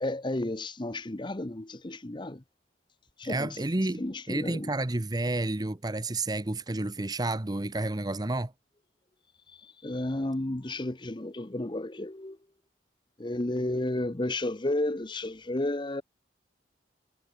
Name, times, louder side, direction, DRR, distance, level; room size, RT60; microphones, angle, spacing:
voice 1, 0.0-2.4 3.2-3.6 4.0-4.7 9.8-12.4 13.2-16.0, left 1 dB, 25° left, 0.9 m, -32 dB
voice 2, 3.2-8.5, right 2 dB, 20° right, 0.8 m, -30 dB
head